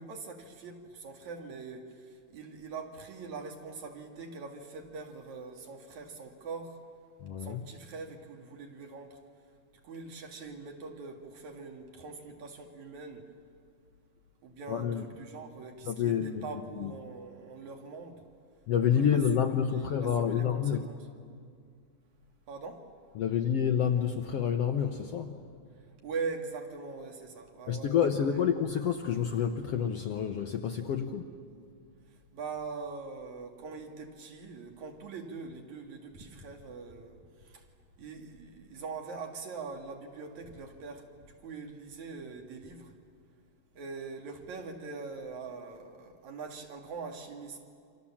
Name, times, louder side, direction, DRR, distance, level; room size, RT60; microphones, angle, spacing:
voice 1, 0.0-1.9 2.3-6.8 7.4-9.2 9.8-13.2 14.4-14.9 15.2-18.2 18.9-19.2 19.7-19.9 20.3-21.0 22.5-22.8 26.0-28.0 32.3-37.2 37.4-37.6 38.0-41.1 41.4-42.9 43.8-47.6, right 4 dB, 60° right, 3 dB, 3.3 m, -42 dB
voice 2, 7.2-7.7 14.7-15.1 15.8-17.0 18.7-20.9 23.1-25.4 27.7-31.3, left 8 dB, 70° left, 6 dB, 1.5 m, -29 dB
28.5 x 26.0 x 7.3 m, 2.3 s
omnidirectional pair, 3.8 m